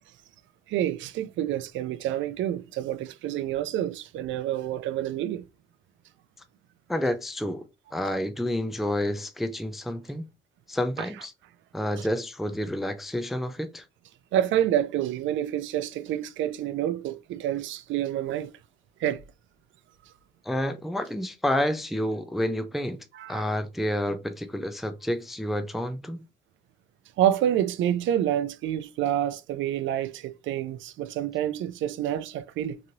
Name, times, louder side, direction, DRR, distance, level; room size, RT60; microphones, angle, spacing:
voice 1, 0.7-5.4 14.3-18.5 19.0-19.2 23.1-23.4 27.2-32.8, right 11 dB, 75° right, 0.4 m, -28 dB
voice 2, 6.9-7.6 7.9-10.3 10.7-11.3 11.7-13.9 20.4-26.2, left 1 dB, ahead, 0.3 m, -29 dB
3.0 x 2.6 x 2.6 m
cardioid pair, 90°, 20 cm